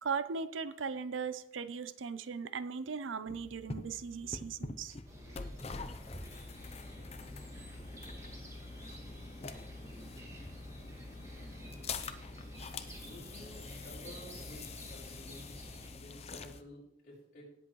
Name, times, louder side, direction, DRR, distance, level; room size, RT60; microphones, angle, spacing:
voice 1, 0.0-5.0, right 5 dB, 85° right, 14 dB, 0.6 m, -38 dB
sound 1, 3.3-16.6, left 4 dB, 35° left, 0.6 m, -46 dB
sound 2, 5.0-15.9, equal, 15° right, 2.1 m, -50 dB
voice 2, 13.0-15.5 15.9-17.4, left 1 dB, 50° left, -5 dB, 5.2 m, -53 dB
18.0 x 7.8 x 3.1 m, 0.76 s
head